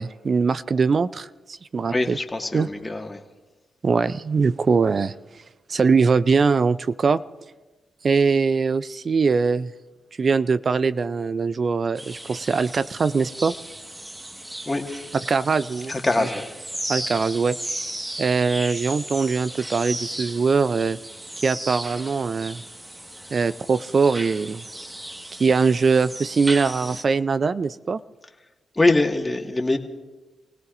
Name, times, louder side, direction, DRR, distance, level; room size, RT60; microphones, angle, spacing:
voice 1, 0.0-2.2 2.5-2.7 3.8-5.1 5.7-7.2 8.0-9.7 10.2-13.5 15.3-16.3 16.9-17.8 18.2-21.0 21.4-22.6 23.3-24.6 25.4-28.0, right 5 dB, 50° right, 15 dB, 0.4 m, -22 dB
voice 2, 1.9-3.2 14.7-14.9 15.9-16.5 28.7-29.8, left 2 dB, 25° left, 3 dB, 1.8 m, -23 dB
sound 1, 12.0-27.0, right 1 dB, 20° right, 1.6 m, -36 dB
29.5 x 17.5 x 2.6 m, 1.2 s
supercardioid pair, 45°, 0 cm